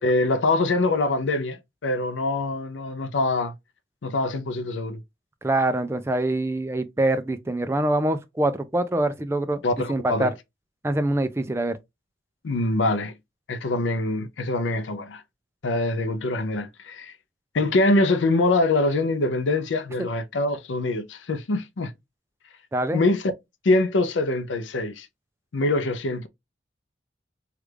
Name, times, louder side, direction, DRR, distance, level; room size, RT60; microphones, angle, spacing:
voice 1, 0.0-3.5 4.0-5.0 9.6-10.3 12.4-13.1 13.5-15.2 15.6-17.1 17.5-21.9 22.9-23.2 23.6-25.1 25.5-26.3, left 2 dB, 85° left, 0.5 m, -24 dB
voice 2, 5.4-9.6 9.9-10.3 10.8-11.8 22.7-23.0, right 1 dB, 15° right, 0.3 m, -24 dB
3.2 x 2.4 x 3.2 m
head